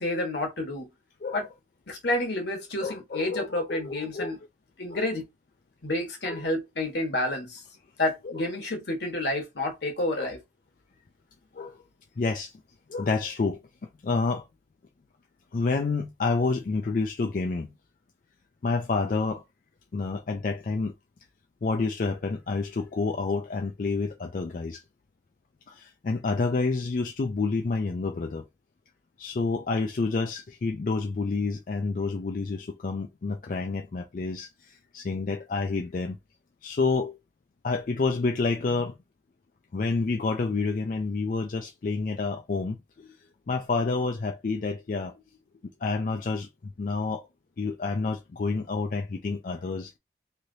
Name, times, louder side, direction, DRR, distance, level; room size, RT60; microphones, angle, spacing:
voice 1, 0.0-0.9 1.3-1.4 1.9-4.4 4.8-5.2 5.8-7.6 8.0-10.4, left 1 dB, 70° left, 1.2 m, -29 dB
voice 2, 2.8-4.3 4.9-5.0 6.3-6.5 8.2-8.4 10.2-10.3 11.5-11.8 12.2-12.5 12.9-13.6 14.0-14.4 15.5-17.7 18.6-19.4 19.9-20.9 21.6-24.8 25.7-28.4 29.2-36.2 36.6-37.2 37.6-38.9 39.7-43.1 43.5-45.2 45.8-46.5 46.8-47.2 47.6-49.9, left 3 dB, 45° left, 0.4 m, -29 dB
3.2 x 2.8 x 2.6 m
head